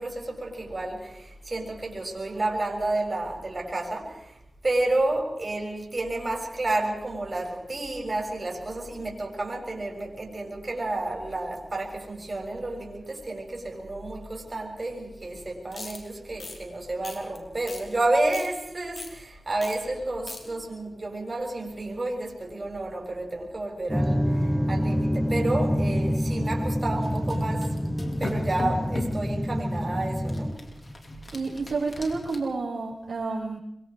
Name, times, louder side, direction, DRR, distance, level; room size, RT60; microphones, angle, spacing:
voice 1, 0.0-27.8 28.2-30.7, right 2 dB, 40° right, 0 dB, 7.4 m, -30 dB
sound 1, 15.7-16.0 16.4-16.6 17.0-17.4 17.7-17.8 18.1-18.5 19.0-19.1 19.6-19.8 20.0-20.4, left 3 dB, 65° left, 5.0 m, -39 dB
sound 2, 23.9-30.5, equal, 5° left, 2.5 m, -26 dB
sound 3, 27.0-29.3 30.3-32.4, left 1 dB, 40° left, 5.1 m, -37 dB
voice 2, 31.3-33.6, right 3 dB, 75° right, -3 dB, 6.1 m, -30 dB
26.0 x 24.0 x 4.9 m, 0.80 s
cardioid pair, 50°, 0 cm